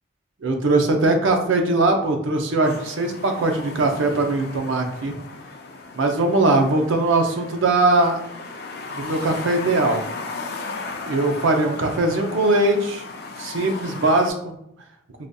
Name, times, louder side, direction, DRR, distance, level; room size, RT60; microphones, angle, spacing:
voice 1, 0.4-5.2 6.0-8.2 8.9-10.0 11.0-13.0 13.4-14.6, right 2 dB, 85° right, 4 dB, 0.5 m, -20 dB
sound 1, 2.6-14.3, left 3 dB, 55° left, 0.4 m, -36 dB
4.8 x 2.6 x 2.2 m, 0.73 s
head